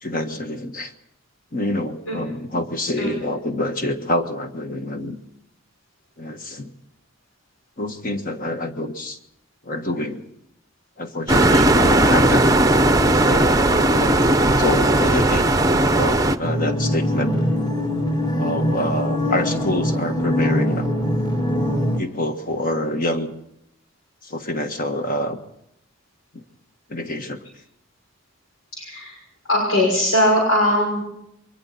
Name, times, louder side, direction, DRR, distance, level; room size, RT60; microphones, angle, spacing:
voice 1, 0.0-0.9 1.5-5.2 6.2-6.7 7.8-9.2 9.6-10.2 11.0-12.4 13.1-14.2 14.6-15.5 15.9-17.4 18.4-20.9 22.0-23.3 24.2-25.4 26.3-26.4 26.9-27.4, left 1 dB, 40° left, 6 dB, 1.5 m, -26 dB
sound 1, 11.3-16.4, right 1 dB, 15° right, 0.8 m, -17 dB
sound 2, 16.4-22.0, left 1 dB, 20° left, 1.9 m, -22 dB
voice 2, 28.7-29.1 29.5-31.0, left 1 dB, 90° left, -1 dB, 6.1 m, -20 dB
27.0 x 23.0 x 4.2 m, 0.79 s
head